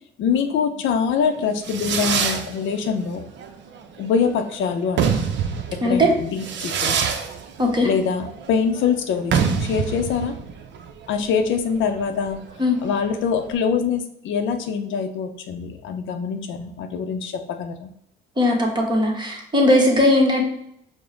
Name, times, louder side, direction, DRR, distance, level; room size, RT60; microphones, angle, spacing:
voice 1, 0.2-3.2 4.0-5.2 5.8-6.9 7.8-10.4 11.1-12.4 12.8-17.9, left 6 dB, 75° left, 7 dB, 0.5 m, -24 dB
Fireworks, 1.3-13.5, right 6 dB, 65° right, 0.5 m, -27 dB
voice 2, 5.8-6.1 7.6-7.9 12.6-12.8 18.4-20.4, left 1 dB, 20° right, 0 dB, 1.1 m, -18 dB
4.9 x 2.1 x 3.8 m, 0.72 s
cardioid pair, 90°, 20 cm